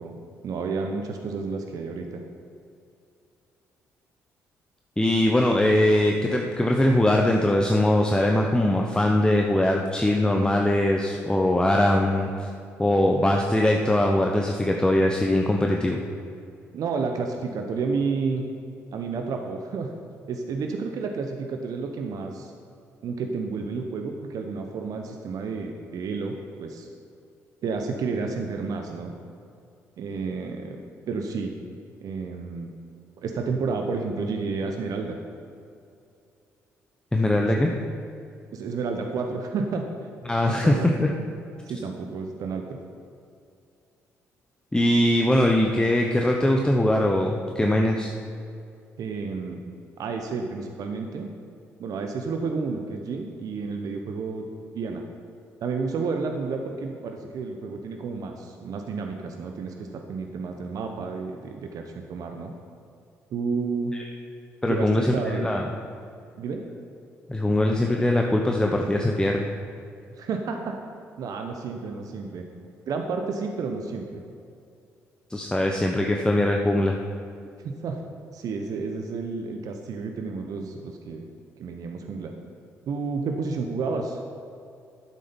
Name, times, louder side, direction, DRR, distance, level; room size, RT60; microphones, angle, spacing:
voice 1, 0.0-2.2 16.7-18.4 18.9-19.9 20.3-22.5 23.0-26.9 27.6-29.1 30.0-30.8 31.1-31.5 32.0-32.7 33.2-35.2 37.4-37.6 38.5-39.9 40.5-40.9 41.6-42.8 49.0-49.6 50.0-51.3 51.8-54.5 54.7-55.0 55.6-62.5 63.3-64.0 64.7-65.5 66.4-66.6 70.2-70.8 71.2-72.4 72.9-74.2 77.6-78.0 78.3-81.3 81.6-82.3 82.9-84.2, right 4 dB, 60° right, 4 dB, 1.0 m, -31 dB
voice 2, 5.0-12.5 12.8-16.0 37.1-37.7 40.3-41.1 44.7-48.1 63.9-64.0 64.6-65.6 67.3-69.5 75.3-77.0, left 1 dB, 10° left, 1 dB, 1.1 m, -21 dB
11.5 x 7.7 x 5.4 m, 2.5 s
hypercardioid pair, 45°, 7 cm